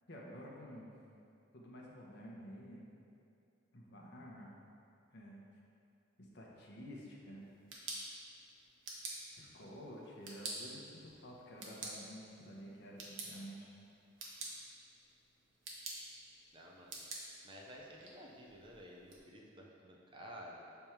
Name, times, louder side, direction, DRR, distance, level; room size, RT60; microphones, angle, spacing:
voice 1, 0.1-0.9 1.5-2.9 3.7-4.5 5.1-5.4 6.2-7.5 9.3-13.7, equal, 60° left, -3 dB, 1.0 m, -51 dB
sound 1, 7.4-19.2, right 2 dB, 75° right, 1.0 m, -49 dB
voice 2, 16.5-17.0 17.4-20.6, equal, 25° right, -2 dB, 0.6 m, -53 dB
7.0 x 3.5 x 4.5 m, 2.6 s
head